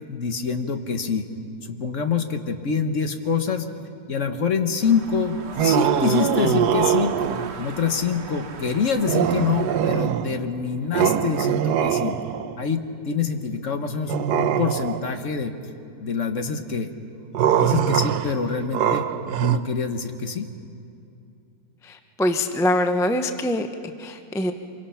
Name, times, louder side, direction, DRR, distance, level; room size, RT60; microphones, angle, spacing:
voice 1, 0.1-1.3 1.6-3.7 4.1-7.2 7.6-12.2 12.6-15.5 16.0-16.9 17.4-19.1 19.4-20.5, left 5 dB, 50° left, 7 dB, 1.4 m, -25 dB
sound 1, 4.8-10.1, right 5 dB, 45° right, 1.1 m, -39 dB
sound 2, 5.5-7.6 9.1-10.5 10.9-12.6 14.1-15.2 17.3-19.6, right 9 dB, 80° right, 1.3 m, -22 dB
voice 2, 21.8-23.7 24.0-24.5, left 1 dB, 5° left, 7 dB, 0.4 m, -23 dB
25.5 x 23.0 x 5.7 m, 2.5 s
omnidirectional pair, 1.8 m